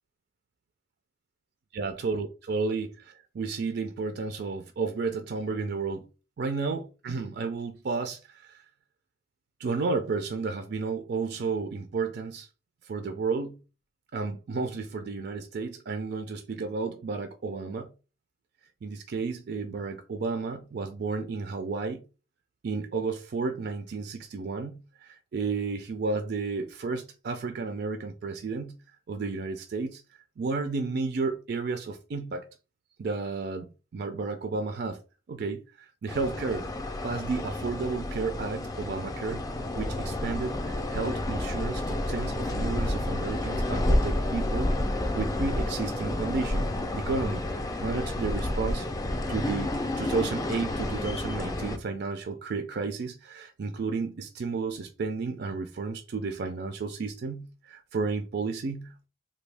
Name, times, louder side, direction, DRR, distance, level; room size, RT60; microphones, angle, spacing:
voice 1, 1.7-6.1 6.4-8.6 9.6-12.5 12.8-13.6 14.1-17.9 18.8-22.0 22.6-28.8 29.1-32.5 33.0-35.0 35.3-36.7 37.0-39.5 39.8-48.9 49.3-59.1, right 4 dB, 55° right, 0.4 m, -32 dB
sound 1, 36.1-51.8, left 1 dB, 20° left, 0.4 m, -30 dB
3.3 x 2.2 x 3.3 m
head